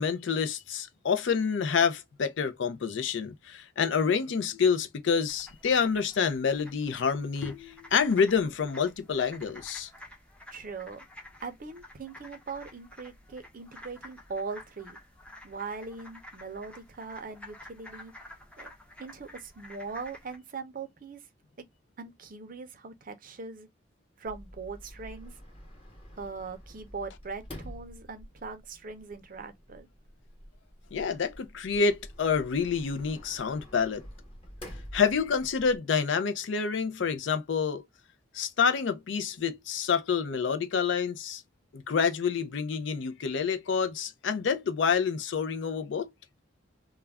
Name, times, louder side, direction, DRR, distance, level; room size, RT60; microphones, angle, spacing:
voice 1, 0.0-9.9 30.9-34.0 34.9-37.8 38.3-41.4 41.7-46.1, left 6 dB, 70° left, 0.4 m, -28 dB
sound 1, 5.3-20.4, left 1 dB, 5° left, 0.5 m, -50 dB
voice 2, 10.5-11.1 11.4-15.0 15.4-18.7 19.0-21.2 22.0-23.7 24.2-25.4 26.2-29.9, right 4 dB, 45° right, 0.5 m, -41 dB
Sliding door, 24.3-35.8, equal, 30° left, 1.0 m, -48 dB
2.3 x 2.1 x 3.3 m
head